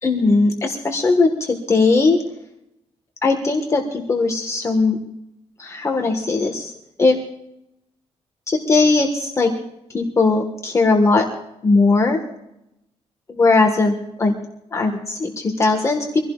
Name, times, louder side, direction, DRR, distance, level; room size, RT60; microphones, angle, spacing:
voice 1, 0.0-2.2 3.2-5.0 5.6-6.7 7.0-7.2 8.5-9.5 9.9-11.3 11.6-12.2 13.3-14.3 14.7-16.2, left 3 dB, 25° left, 2 dB, 1.6 m, -18 dB
25.0 x 16.5 x 2.5 m, 0.84 s
wide cardioid pair, 170°, 11 cm